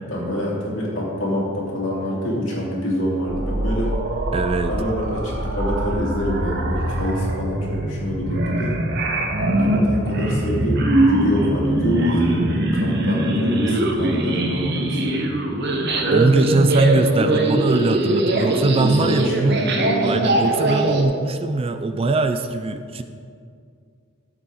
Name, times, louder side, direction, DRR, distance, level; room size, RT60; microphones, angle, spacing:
voice 1, 0.1-3.9 4.6-8.8 9.4-15.2 18.3-20.1, equal, 60° left, -5 dB, 3.0 m, -26 dB
sound 1, 3.3-21.0, right 1 dB, 55° right, 1.1 m, -22 dB
voice 2, 4.3-4.7 16.1-19.7 20.0-23.0, right 3 dB, 25° right, 9 dB, 0.4 m, -21 dB
12.5 x 8.0 x 3.9 m, 2.3 s
head